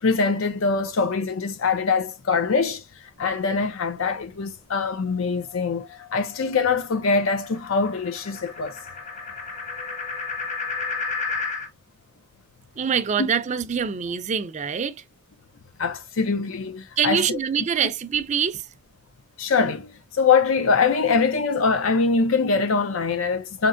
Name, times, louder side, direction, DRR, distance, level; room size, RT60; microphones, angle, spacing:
voice 1, 0.0-2.8 3.2-5.8 6.1-8.8 15.8-17.4 19.4-23.7, left 4 dB, 85° left, 0.6 m, -23 dB
sound 1, 5.0-11.7, left 4 dB, 35° left, 1.1 m, -33 dB
voice 2, 12.8-15.0 17.0-18.7, right 7 dB, 35° right, 0.4 m, -25 dB
4.4 x 2.8 x 2.5 m
head